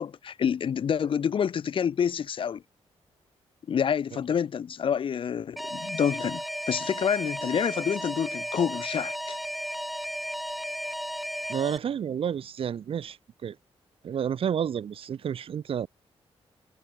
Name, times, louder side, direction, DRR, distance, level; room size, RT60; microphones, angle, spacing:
voice 1, 0.0-2.6 3.7-9.4, left 8 dB, 55° left, 1.9 m, -28 dB
Alarm, 5.6-11.8, equal, ahead, 1.5 m, -34 dB
voice 2, 11.5-13.2 13.4-13.6 14.0-15.9, right 8 dB, 65° right, 2.7 m, -30 dB
wide cardioid pair, 130°, 10 cm